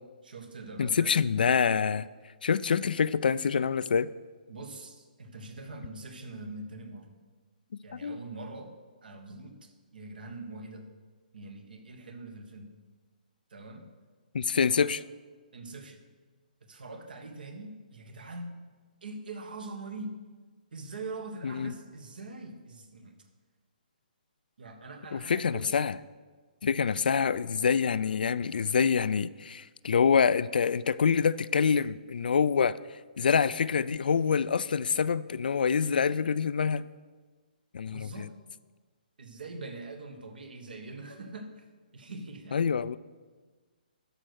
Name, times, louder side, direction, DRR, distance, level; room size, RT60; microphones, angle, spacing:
voice 1, 0.2-1.2 4.5-7.2 7.8-10.9 11.3-12.8 13.5-13.9 14.7-14.9 15.5-16.0 16.6-18.6 19.0-20.2 20.7-23.3 24.6-25.8 26.8-27.0 37.9-38.4 39.2-41.7 41.9-42.6, right 2 dB, 75° right, 6 dB, 1.6 m, -43 dB
voice 2, 0.8-2.1 2.4-4.1 8.0-8.2 14.3-15.0 21.4-21.7 25.1-25.9 26.6-32.8 33.2-36.9 37.7-38.3 42.5-43.0, left 6 dB, 75° left, 17 dB, 0.4 m, -26 dB
12.0 x 5.2 x 6.4 m, 1.4 s
hypercardioid pair, 150°, 5 cm